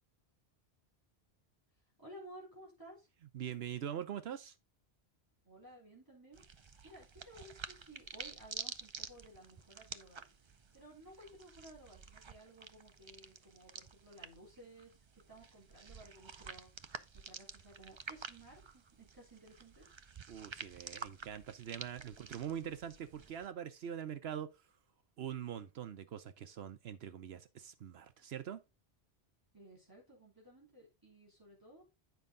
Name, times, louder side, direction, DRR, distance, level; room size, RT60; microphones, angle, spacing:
voice 1, 2.0-3.1 5.4-6.4 6.8-19.9 29.5-31.8, right 1 dB, 20° right, 3.7 m, -56 dB
voice 2, 3.3-4.6 20.3-24.6 25.2-28.6, right 9 dB, 70° right, 0.9 m, -43 dB
sound 1, 6.3-23.5, right 5 dB, 40° right, 0.4 m, -50 dB
9.5 x 5.4 x 3.7 m
omnidirectional pair, 1.1 m